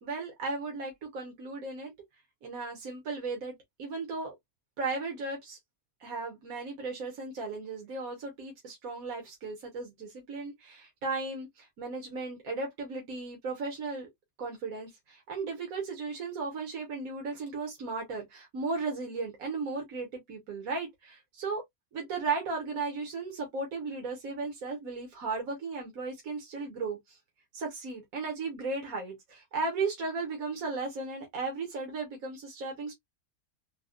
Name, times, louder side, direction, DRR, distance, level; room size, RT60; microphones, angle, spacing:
voice 1, 0.0-1.9 2.4-3.5 3.8-4.3 4.8-5.6 6.0-14.1 14.4-21.6 21.9-27.2 27.5-32.9, right 3 dB, 75° right, 1.6 m, -36 dB
4.0 x 2.3 x 2.4 m
omnidirectional pair, 1.5 m